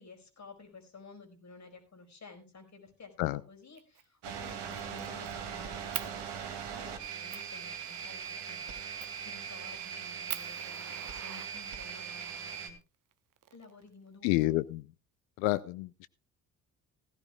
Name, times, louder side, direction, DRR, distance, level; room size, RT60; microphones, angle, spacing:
voice 1, 0.0-12.8 13.5-14.6, left 3 dB, 35° left, 4 dB, 5.0 m, -53 dB
Fire, 3.8-4.0 4.4-5.3 5.9-6.1 6.7-6.8 7.3-7.5 9.0-9.3 9.8-9.9 10.3-12.1 13.1-14.1, right 11 dB, 40° right, 1.0 m, -42 dB
sound 1, 4.2-12.7, right 7 dB, 55° right, 2.5 m, -40 dB
voice 2, 14.2-14.8 15.4-16.1, left 18 dB, 60° left, 16 dB, 0.7 m, -29 dB
16.5 x 15.0 x 2.3 m, 0.30 s
figure-of-eight pair, 50°, 50 cm